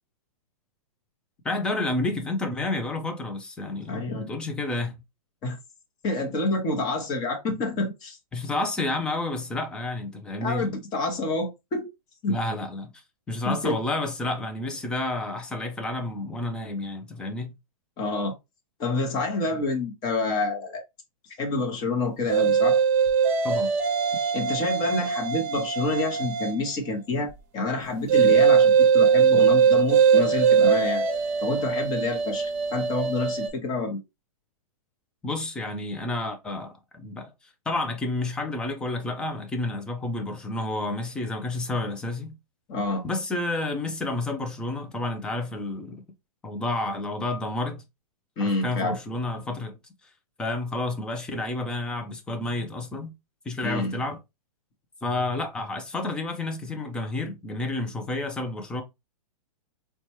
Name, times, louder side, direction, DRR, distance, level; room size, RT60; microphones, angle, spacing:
voice 1, 1.4-5.0 8.3-10.7 12.3-13.0 13.3-17.5 23.4-23.7 35.2-37.3 37.7-42.4 43.0-46.0 46.4-47.8 48.4-49.8 50.4-53.1 53.5-54.2 55.0-58.8, left 2 dB, 5° left, 0.3 m, -30 dB
voice 2, 3.9-4.3 5.4-5.6 6.0-8.2 10.4-11.9 12.2-12.4 13.5-13.7 18.0-18.4 18.8-20.8 21.4-22.8 24.1-31.0 31.4-34.0 42.7-43.0 48.4-49.0 53.6-54.0, left 2 dB, 20° left, 0.9 m, -28 dB
sound 1, 22.3-26.7 28.1-33.5, right 6 dB, 30° right, 0.8 m, -21 dB
4.1 x 2.2 x 3.0 m
hypercardioid pair, 155°, 18 cm